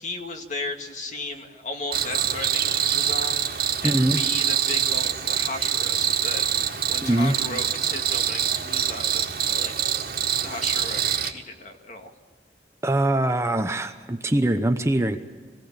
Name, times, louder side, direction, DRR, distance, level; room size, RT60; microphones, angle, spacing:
voice 1, 0.0-6.5 6.9-9.7 10.4-12.1, left 2 dB, 45° left, 4 dB, 2.1 m, -35 dB
Cricket, 1.9-11.3, right 9 dB, 60° right, 1.9 m, -25 dB
voice 2, 3.8-4.2 7.0-7.4 12.8-15.2, right 1 dB, 15° right, 7 dB, 0.8 m, -22 dB
23.5 x 16.5 x 8.8 m, 1.5 s
head